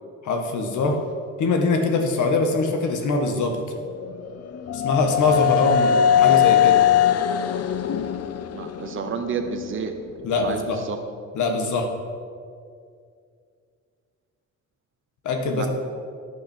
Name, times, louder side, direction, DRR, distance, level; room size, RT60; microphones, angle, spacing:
voice 1, 0.2-1.0 1.4-3.5 4.7-6.8 10.2-10.8 11.3-11.9 15.3-15.7, left 3 dB, 75° left, 4 dB, 1.7 m, -23 dB
sound 1, 3.8-9.7, left 10 dB, 55° left, 0.7 m, -21 dB
voice 2, 8.5-9.9 10.4-11.0 15.5-15.7, right 6 dB, 40° right, 5 dB, 0.9 m, -30 dB
14.0 x 9.3 x 4.5 m, 2.3 s
cardioid pair, 90°, 30 cm